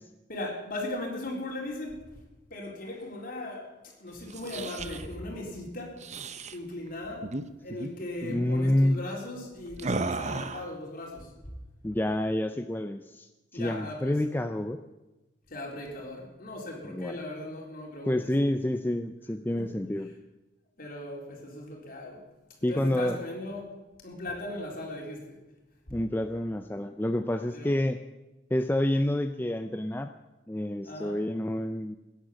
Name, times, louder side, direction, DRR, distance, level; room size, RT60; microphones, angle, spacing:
voice 1, 0.3-2.1 2.5-6.0 6.5-7.3 7.6-11.3 13.5-14.2 15.5-18.3 19.6-19.8 20.8-22.2 22.6-23.8 24.0-25.4 27.5-27.7 30.8-31.2, left 1 dB, 50° left, -1 dB, 4.1 m, -38 dB
sound 1, 4.2-5.1 6.0-6.6 7.2-7.4 7.7-7.9 8.2-8.5 9.8-10.7, right 3 dB, 40° right, 0.8 m, -34 dB
voice 2, 8.3-9.0 11.8-14.8 16.9-17.2 18.1-20.1 22.6-23.2 25.9-28.0 28.5-30.1 30.5-32.0, left 1 dB, 10° left, 7 dB, 0.5 m, -28 dB
16.5 x 10.5 x 7.6 m, 1.1 s
head